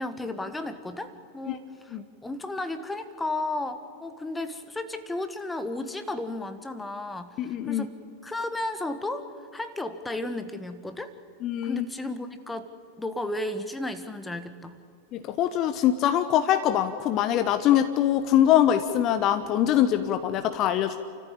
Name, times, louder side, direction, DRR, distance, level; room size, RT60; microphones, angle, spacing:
voice 1, 0.0-7.9 8.2-11.1 11.6-12.7 13.0-14.8, left 2 dB, 10° left, 10 dB, 1.5 m, -34 dB
voice 2, 7.4-7.9 11.4-11.8 15.1-21.0, left 11 dB, 35° left, 10 dB, 1.0 m, -23 dB
29.5 x 14.0 x 8.8 m, 2.4 s
figure-of-eight pair, 90°, 0 cm